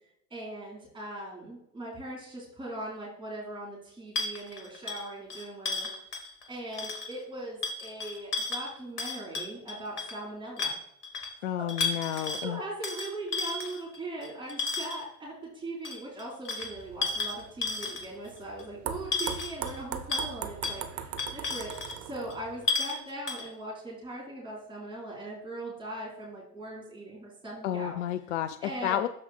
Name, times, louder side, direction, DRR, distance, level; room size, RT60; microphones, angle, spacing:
voice 1, 0.3-5.9 6.5-10.7 11.1-11.7 12.0-27.9 28.6-29.0, right 1 dB, 10° right, -6 dB, 3.2 m, -40 dB
sound 1, 4.2-6.5 6.7-7.2 7.6-10.2 10.6-11.3 11.7-12.5 12.8-15.1 15.8-18.3 18.6-18.7 19.1-19.8 20.1-20.3 20.6-20.8 21.2-22.0 22.3-22.4 22.7-23.0 23.3-23.5, left 3 dB, 70° left, 1.5 m, -33 dB
voice 2, 11.4-12.6 27.6-29.1, left 11 dB, 50° left, 11 dB, 0.5 m, -31 dB
sound 2, 16.6-22.7, right 9 dB, 40° right, 0.8 m, -40 dB
13.5 x 4.8 x 2.3 m, 0.76 s
figure-of-eight pair, 80°, 48 cm